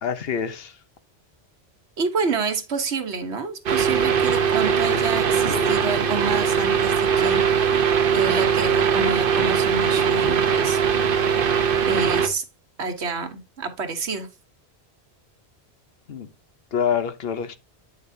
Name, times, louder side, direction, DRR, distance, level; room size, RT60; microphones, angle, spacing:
voice 1, 0.0-0.8 16.1-16.3 16.7-17.6, left 7 dB, 65° left, 1.0 m, -26 dB
voice 2, 2.0-7.4 8.1-10.8 11.9-12.4 12.8-14.3, right 4 dB, 85° right, 1.5 m, -28 dB
sound 1, 3.7-12.3, right 7 dB, 60° right, 1.0 m, -20 dB
9.0 x 6.6 x 2.7 m
omnidirectional pair, 1.1 m